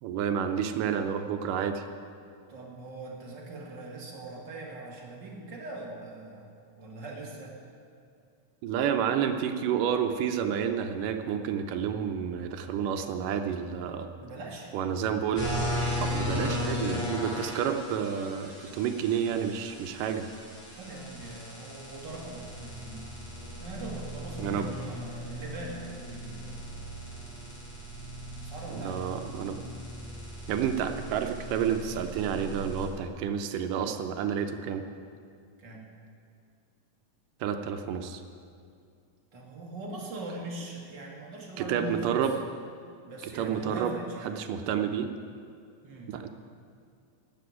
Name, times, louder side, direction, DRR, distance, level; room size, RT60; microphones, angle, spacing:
voice 1, 0.0-1.8 8.6-14.1 14.7-15.5 16.0-20.3 24.4-24.7 28.8-29.6 30.5-34.8 37.4-38.2 41.6-42.3 43.3-43.9 44.2-45.1 46.1-46.3, right 8 dB, 80° right, 7 dB, 2.3 m, -30 dB
voice 2, 2.5-6.5 6.8-7.7 14.2-14.7 20.8-23.0 23.6-26.7 28.4-29.2 35.6-35.9 39.3-42.3 43.0-44.3 45.8-46.1, right 2 dB, 40° right, -1 dB, 2.0 m, -41 dB
sound 1, 15.3-32.9, equal, 45° left, 5.0 m, -37 dB
12.0 x 7.8 x 9.7 m, 2.4 s
omnidirectional pair, 3.9 m